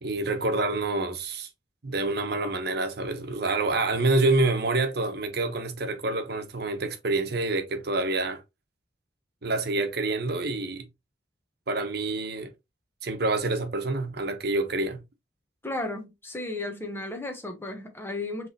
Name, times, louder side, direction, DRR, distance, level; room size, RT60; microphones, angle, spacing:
voice 1, 0.0-1.5 1.8-8.4 9.4-10.9 11.7-12.5 13.0-15.0, right 2 dB, 60° right, 1.1 m, -27 dB
voice 2, 15.6-18.5, left 2 dB, 15° left, 1.2 m, -34 dB
5.4 x 3.5 x 2.8 m
head